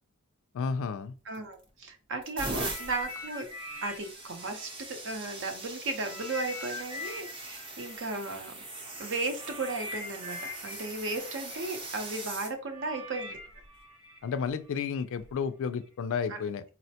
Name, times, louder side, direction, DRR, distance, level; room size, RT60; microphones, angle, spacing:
voice 1, 0.5-1.1 14.2-16.7, left 6 dB, 65° left, 0.4 m, -32 dB
voice 2, 1.2-3.5 3.8-8.6 9.0-13.4 16.3-16.4, right 3 dB, 60° right, 0.7 m, -35 dB
sound 1, 1.3-1.7 2.2-12.5 13.4-13.6 15.2-15.3, right 2 dB, 25° right, 0.7 m, -41 dB
sound 2, 2.6-5.6 6.0-15.0 15.7-15.9, left 1 dB, 90° right, 1.5 m, -43 dB
4.1 x 2.1 x 2.8 m
head